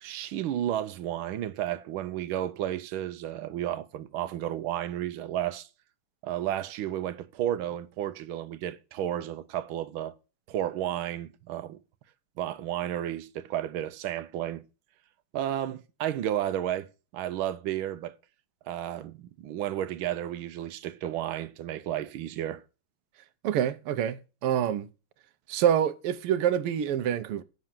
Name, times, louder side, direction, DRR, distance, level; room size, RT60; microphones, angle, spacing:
voice 1, 0.0-5.7 6.2-10.2 10.5-11.8 12.4-14.6 15.3-18.2 18.7-22.6, right 12 dB, 70° right, 1.5 m, -32 dB
voice 2, 23.4-24.9 25.5-27.4, right 10 dB, 90° right, 1.7 m, -26 dB
7.5 x 6.8 x 7.4 m
omnidirectional pair, 2.4 m